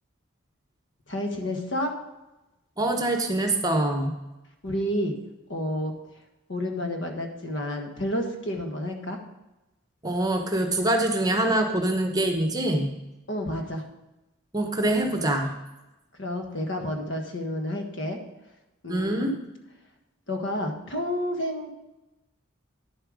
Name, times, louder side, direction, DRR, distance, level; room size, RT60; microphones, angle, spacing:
voice 1, 1.1-1.9 4.6-5.1 5.5-5.9 6.5-9.2 13.3-13.8 16.1-18.2 18.8-19.3 20.3-21.7, left 1 dB, 60° left, 4 dB, 1.4 m, -30 dB
voice 2, 2.8-4.1 10.0-12.9 14.5-15.5 18.9-19.3, right 1 dB, 20° right, 4 dB, 1.0 m, -24 dB
10.0 x 7.6 x 4.9 m, 0.99 s
head